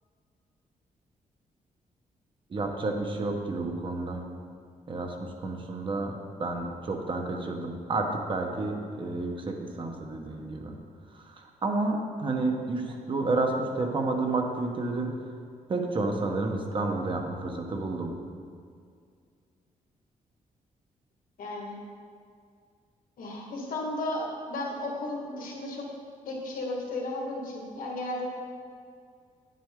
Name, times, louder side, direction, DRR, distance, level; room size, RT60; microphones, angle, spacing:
voice 1, 2.5-4.2 4.9-10.7 11.1-15.1 15.7-18.1, right 2 dB, 35° right, 2 dB, 1.0 m, -30 dB
voice 2, 21.4-21.8 23.2-25.9 26.3-28.3, left 2 dB, 80° left, -1 dB, 1.7 m, -34 dB
9.5 x 7.6 x 3.7 m, 2.2 s
wide cardioid pair, 145°, 14 cm